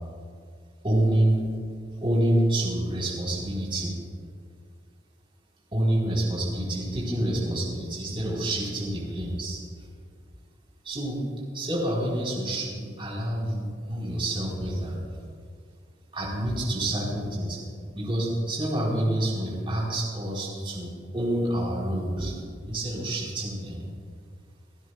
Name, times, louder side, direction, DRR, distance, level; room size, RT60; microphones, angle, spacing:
voice 1, 0.8-1.4 2.0-3.9 5.7-9.6 10.8-11.3 11.5-15.0 16.1-17.6 17.9-23.8, right 1 dB, 30° right, -5 dB, 4.0 m, -27 dB
29.0 x 12.5 x 2.4 m, 2.2 s
head